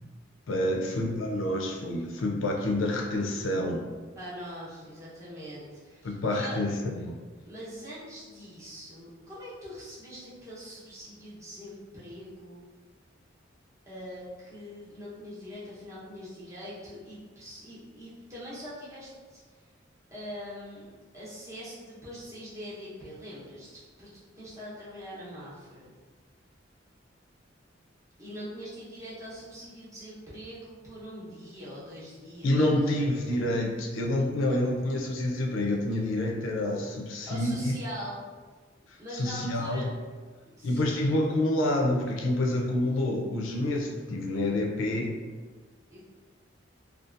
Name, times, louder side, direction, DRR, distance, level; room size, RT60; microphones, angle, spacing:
voice 1, 0.5-3.8 6.0-7.2 32.4-37.7 38.9-39.9 40.6-45.2, left 1 dB, 85° left, 0 dB, 0.5 m, -28 dB
voice 2, 4.1-6.5 7.4-12.7 13.9-19.6 20.1-25.9 28.2-32.9 34.2-34.3 37.3-38.3 39.0-39.9 40.5-41.0 45.9-46.0, equal, 15° right, -10 dB, 0.8 m, -43 dB
2.6 x 2.4 x 2.4 m, 1.4 s
head